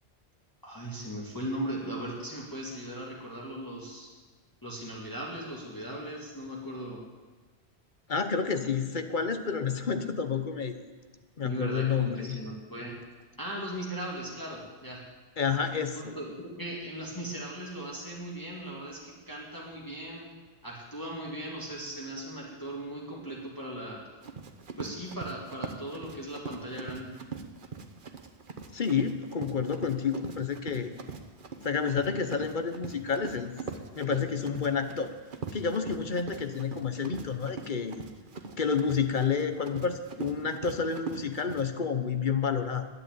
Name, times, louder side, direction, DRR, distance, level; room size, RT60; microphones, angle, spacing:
voice 1, 0.6-4.1 4.6-7.0 11.4-13.0 13.4-15.0 16.1-20.3 20.6-24.0 24.8-27.1, right 1 dB, 20° left, -4 dB, 2.0 m, -38 dB
voice 2, 8.1-10.8 11.4-12.4 15.4-16.2 28.7-30.9 31.6-33.6 33.9-35.1 35.5-38.0 38.6-42.9, left 6 dB, 50° left, 9 dB, 1.1 m, -29 dB
Run, 24.2-41.6, right 5 dB, 50° right, 1.1 m, -42 dB
11.0 x 9.3 x 9.1 m, 1.3 s
omnidirectional pair, 1.1 m